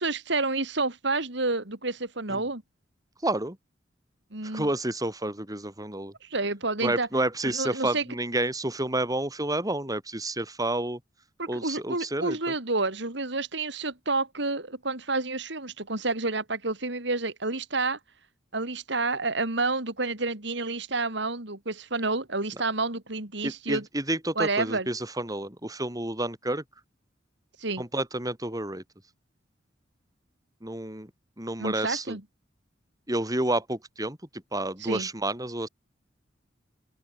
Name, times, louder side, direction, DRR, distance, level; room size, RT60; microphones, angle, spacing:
voice 1, 0.0-2.6 4.3-4.7 6.2-7.1 7.4-8.0 11.4-18.0 18.5-23.8 24.3-24.9 27.6-27.8 31.6-32.2 34.8-35.1, right 3 dB, 65° right, 3.4 m, -29 dB
voice 2, 3.2-3.6 4.5-6.1 6.8-11.0 11.5-12.4 23.4-26.6 27.8-28.8 30.6-31.1 31.4-32.2 33.1-34.2 34.5-35.7, right 1 dB, 20° right, 6.0 m, -30 dB
open air
head